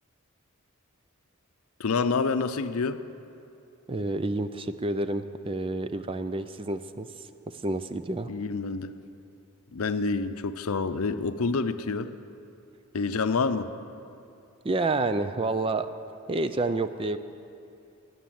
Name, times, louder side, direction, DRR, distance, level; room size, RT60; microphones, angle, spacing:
voice 1, 1.8-3.0 8.3-8.9 9.7-12.1 12.9-13.7, left 4 dB, 85° left, 11 dB, 0.6 m, -27 dB
voice 2, 3.9-7.3 7.5-8.3 14.6-15.9 16.3-17.2, right 2 dB, 25° right, 11 dB, 0.4 m, -29 dB
13.5 x 9.5 x 7.6 m, 2.7 s
head